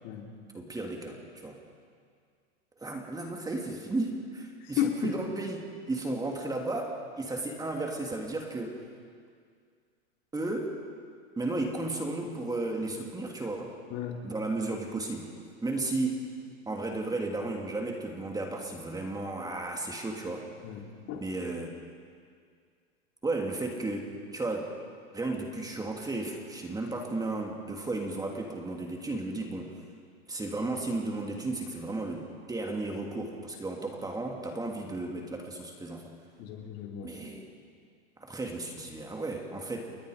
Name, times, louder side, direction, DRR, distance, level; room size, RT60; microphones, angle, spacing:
voice 1, 0.5-1.6 2.8-8.8 10.3-10.7 11.4-13.7 14.2-15.3 15.6-16.3 16.7-20.5 21.1-21.7 23.2-24.7 25.1-29.8 30.3-36.1 37.0-37.4 38.2-39.8, right 2 dB, 10° right, 1 dB, 2.9 m, -34 dB
voice 2, 4.6-5.1 13.9-14.3 20.6-21.2 36.4-37.1, left 9 dB, 50° left, 1 dB, 3.5 m, -34 dB
30.0 x 21.0 x 5.1 m, 2.1 s
hypercardioid pair, 120°, 34 cm